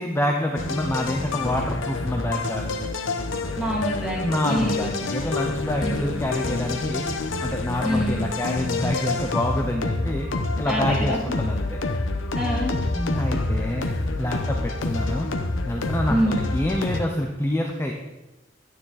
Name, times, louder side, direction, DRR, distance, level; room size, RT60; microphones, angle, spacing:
voice 1, 0.0-2.8 4.2-7.1 7.4-10.3 10.6-11.8 12.9-13.9 14.2-15.3 15.7-17.9, left 1 dB, 15° left, 2 dB, 0.7 m, -27 dB
sound 1, 0.6-17.0, left 2 dB, 75° left, 1.0 m, -28 dB
voice 2, 3.6-4.9 5.8-6.1 7.8-8.3 10.6-11.2 12.4-12.7 16.1-16.4, equal, 5° right, -4 dB, 2.6 m, -26 dB
11.5 x 9.7 x 4.1 m, 1.1 s
head